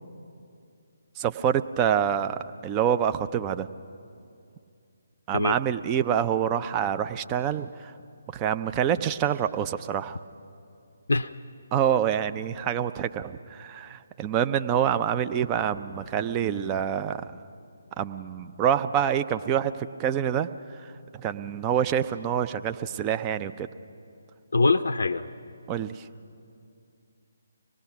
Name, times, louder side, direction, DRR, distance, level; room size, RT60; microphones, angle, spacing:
voice 1, 1.2-3.7 5.3-7.9 8.3-10.2 11.7-17.3 18.0-20.5 21.1-23.7 25.7-26.1, right 9 dB, 20° right, 10 dB, 0.5 m, -26 dB
voice 2, 24.5-25.3, left 3 dB, 65° left, 9 dB, 0.5 m, -23 dB
25.0 x 19.0 x 5.9 m, 2.5 s
figure-of-eight pair, 145°, 0 cm